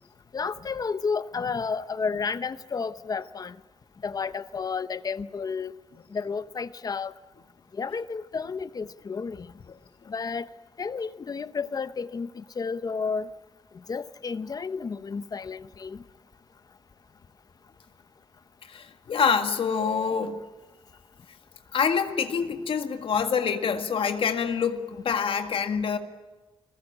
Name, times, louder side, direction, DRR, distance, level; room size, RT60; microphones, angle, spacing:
voice 1, 0.3-3.6 4.0-5.7 6.1-7.1 7.7-9.5 10.1-10.5 10.8-13.3 13.9-16.0, left 5 dB, 45° left, 0.8 m, -31 dB
voice 2, 18.6-20.4 21.7-26.0, left 6 dB, 80° left, 1.9 m, -26 dB
29.5 x 20.5 x 8.6 m
wide cardioid pair, 145°, 9 cm